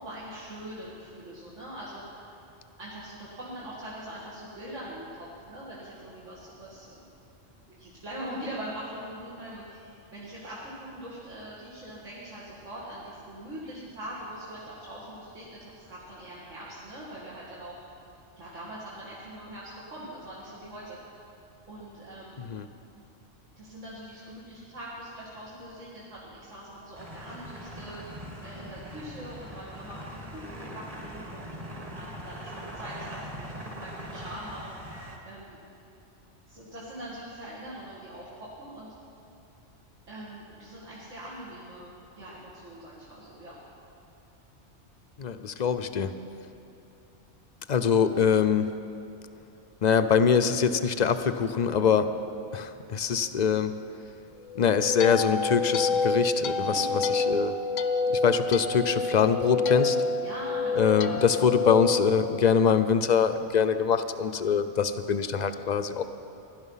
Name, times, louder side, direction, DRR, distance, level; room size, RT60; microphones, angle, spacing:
voice 1, 0.0-2.3 2.8-7.1 7.7-17.8 18.4-21.0 21.7-22.5 23.6-28.0 28.4-35.6 36.5-38.9 40.1-43.6 56.7-57.0 60.2-61.6, right 1 dB, 80° right, -8 dB, 2.6 m, -42 dB
sound 1, 27.0-35.2, equal, 30° right, 1.6 m, -41 dB
voice 2, 45.2-46.1 47.7-48.8 49.8-52.1 52.5-53.8 54.6-57.5 58.1-60.0 60.8-66.0, left 7 dB, 50° left, 9 dB, 0.6 m, -24 dB
sound 2, 54.5-62.8, left 3 dB, 80° left, 1.0 m, -28 dB
17.0 x 12.0 x 5.6 m, 2.7 s
omnidirectional pair, 1.2 m